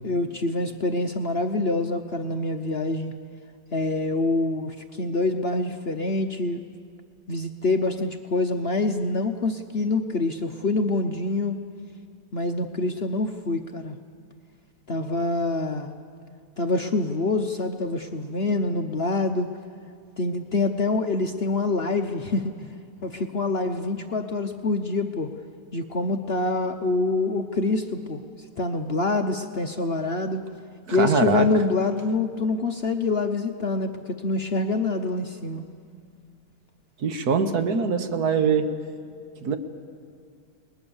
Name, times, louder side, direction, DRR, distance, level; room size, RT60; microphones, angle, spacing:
voice 1, 0.0-3.1 3.7-6.6 7.3-11.6 12.3-14.0 14.9-15.9 16.6-19.5 20.2-22.8 23.0-25.3 25.7-28.2 28.6-30.4 30.9-35.6, left 2 dB, 45° left, 6 dB, 0.8 m, -26 dB
voice 2, 30.9-31.5 37.0-38.7 39.4-39.6, right 5 dB, 65° right, 8 dB, 1.7 m, -23 dB
29.5 x 20.5 x 7.1 m, 2.2 s
omnidirectional pair, 1.8 m